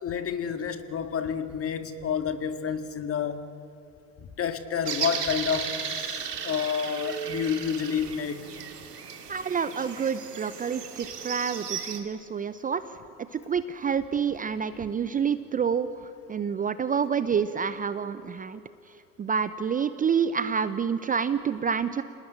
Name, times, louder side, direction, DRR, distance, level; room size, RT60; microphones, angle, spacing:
voice 1, 0.0-3.4 4.4-5.8 6.4-8.5, left 7 dB, 30° left, 9 dB, 1.9 m, -29 dB
sound 1, 4.8-12.0, right 7 dB, 85° right, 2.6 m, -35 dB
voice 2, 9.3-12.8 13.4-15.9 16.3-18.6 19.2-22.0, right 7 dB, 20° right, 13 dB, 0.7 m, -28 dB
28.0 x 19.0 x 9.1 m, 2.6 s
hypercardioid pair, 85°, 47 cm